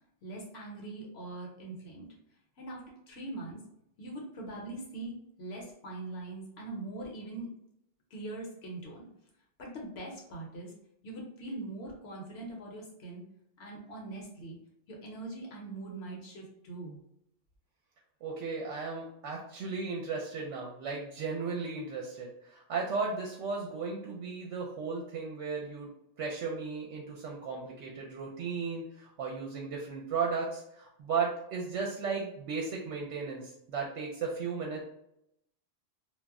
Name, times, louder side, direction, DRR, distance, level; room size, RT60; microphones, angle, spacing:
voice 1, 0.2-2.1 2.6-3.6 4.0-7.5 8.1-9.1 9.6-10.7 11.0-13.2 13.6-14.6 14.9-17.0, right 2 dB, 60° left, -1 dB, 0.8 m, -42 dB
voice 2, 18.2-25.9 26.2-34.8, right 5 dB, 70° right, -1 dB, 0.8 m, -35 dB
2.3 x 2.0 x 3.5 m, 0.78 s
omnidirectional pair, 1.3 m